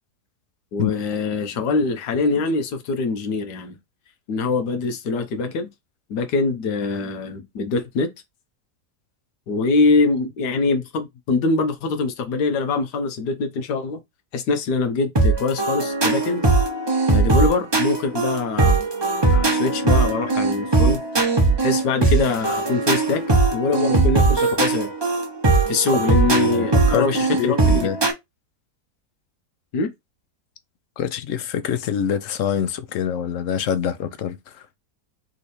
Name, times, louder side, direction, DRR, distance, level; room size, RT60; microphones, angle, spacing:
voice 1, 0.7-3.8 4.3-5.7 6.1-8.1 9.5-14.0 14.3-16.5 17.1-18.8 19.3-21.0 21.6-23.2 23.5-24.9 25.7-27.9 29.7-29.9, left 3 dB, 90° left, 1.5 m, -23 dB
sound 1, 15.2-28.1, right 3 dB, 20° right, 0.7 m, -19 dB
voice 2, 26.3-28.0 31.0-34.6, left 9 dB, 60° left, 0.9 m, -26 dB
3.7 x 3.3 x 4.2 m
omnidirectional pair, 1.7 m